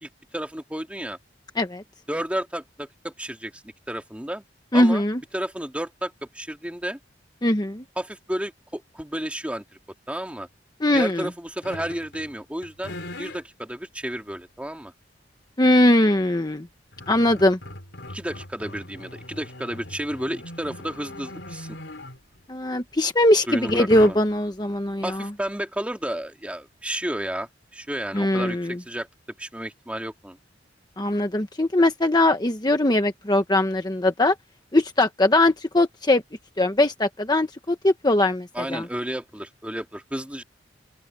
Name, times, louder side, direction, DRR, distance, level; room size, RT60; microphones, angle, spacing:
voice 1, 0.0-1.2 2.1-3.6 3.9-4.4 4.7-5.0 5.3-7.0 8.0-9.6 10.1-10.5 10.9-14.9 18.1-21.8 23.5-24.2 25.0-29.1 29.4-30.4 38.5-40.4, right 1 dB, 5° right, 2.3 m, -32 dB
voice 2, 4.7-5.2 7.4-7.8 10.8-11.3 15.6-16.7 17.1-17.6 22.5-25.3 28.1-28.8 31.0-34.3 34.7-36.2 36.6-38.9, left 1 dB, 20° left, 1.1 m, -21 dB
sound 1, 11.6-12.3 12.6-13.4 14.1-14.2 16.3-16.4 16.7-22.4 23.7-24.5, left 1 dB, 70° left, 4.6 m, -40 dB
open air
head